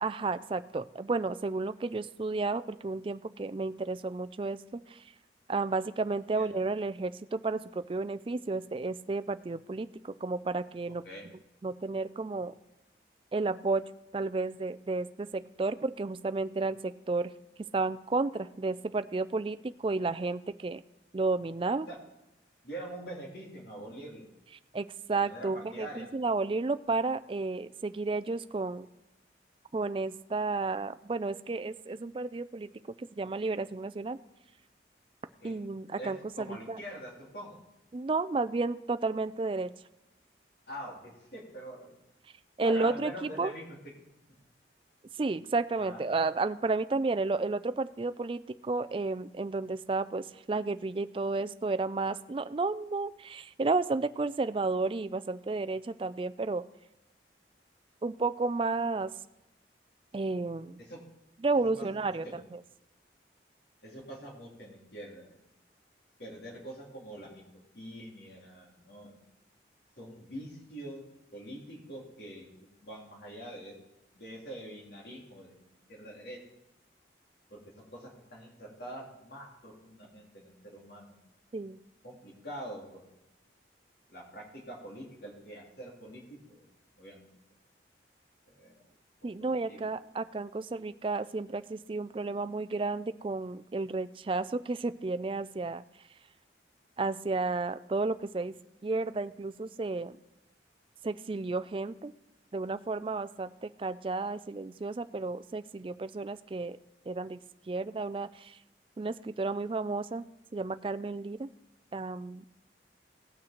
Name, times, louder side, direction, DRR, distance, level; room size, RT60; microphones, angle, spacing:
voice 1, 0.0-5.0 5.5-11.0 11.6-12.5 13.3-13.8 14.1-17.3 17.7-20.8 21.1-21.9 24.7-28.9 29.7-32.7 33.0-34.2 35.4-36.8 37.9-39.7 42.6-43.5 45.2-56.6 58.0-59.1 60.1-60.8 61.4-62.6 81.5-81.8 89.2-95.8 97.0-98.5 98.8-100.2 101.0-102.1 102.5-106.8 107.1-107.4 107.7-108.6 109.0-111.5 111.9-112.4, right 3 dB, 30° right, 12 dB, 0.3 m, -32 dB
voice 2, 22.6-24.2 25.1-26.1 35.4-35.5 36.0-37.6 40.7-42.0 42.6-43.6 45.8-46.0 60.9-61.0 61.8-61.9 62.2-62.4 63.8-65.4 66.2-67.4 67.7-69.1 70.0-71.0 71.3-73.7 74.1-75.6 75.9-76.4 77.5-81.1 82.0-83.0 84.1-86.2 86.5-86.6 87.0-87.4 88.5-88.7 89.2-89.8, right 1 dB, 60° left, -2 dB, 3.4 m, -44 dB
17.5 x 6.3 x 4.4 m, 0.92 s
head